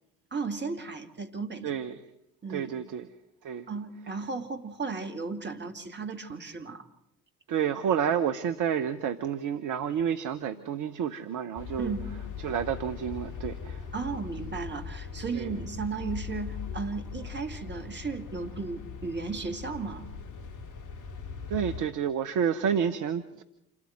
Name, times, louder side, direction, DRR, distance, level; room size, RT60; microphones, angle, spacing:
voice 1, 0.3-1.8 2.4-2.8 3.7-6.8 11.8-12.1 13.9-20.0, right 4 dB, 25° right, 2.4 m, -35 dB
voice 2, 1.6-2.0 2.5-3.1 3.4-3.7 7.5-11.9 12.4-13.9 15.3-15.5 21.5-23.4, right 8 dB, 45° right, 1.0 m, -30 dB
sound 1, 11.6-21.8, left 6 dB, 45° left, 2.1 m, -40 dB
27.5 x 13.5 x 8.1 m
figure-of-eight pair, 50°, 44 cm